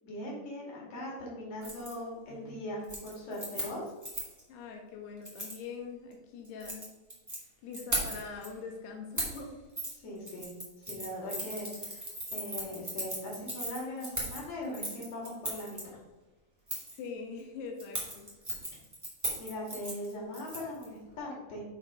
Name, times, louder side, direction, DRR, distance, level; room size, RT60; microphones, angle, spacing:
voice 1, 0.0-3.8 10.0-10.5 10.9-15.8 19.4-21.6, left 1 dB, 45° left, -4 dB, 3.3 m, -40 dB
Keys jangling, 1.6-1.9 2.3-2.6 2.8-4.4 5.2-5.6 6.4-7.4 7.7-8.5 9.2-9.4 9.8-9.9 10.2-15.8 16.7-17.0 17.8-20.8 21.1-21.2, right 1 dB, 10° right, 0.9 m, -37 dB
voice 2, 4.5-6.8 7.3-9.6 16.9-18.3, left 5 dB, 85° left, 2 dB, 2.8 m, -43 dB
7.1 x 4.6 x 5.1 m, 1.1 s
omnidirectional pair, 4.6 m